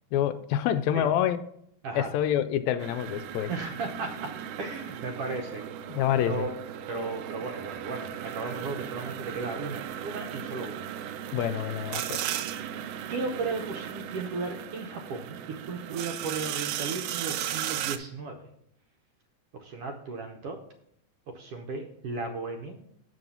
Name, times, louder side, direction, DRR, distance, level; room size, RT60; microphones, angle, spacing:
voice 1, 0.1-1.4 2.0-3.5 5.9-6.5 11.3-12.2, left 10 dB, 80° left, 1.7 m, -27 dB
sound 1, 2.8-18.0, right 10 dB, 85° right, 1.4 m, -36 dB
voice 2, 3.5-5.6 6.2-6.5 6.9-10.8 13.1-18.5 19.5-20.6 21.3-22.8, right 3 dB, 70° right, 1.4 m, -35 dB
7.9 x 5.5 x 5.6 m
omnidirectional pair, 3.4 m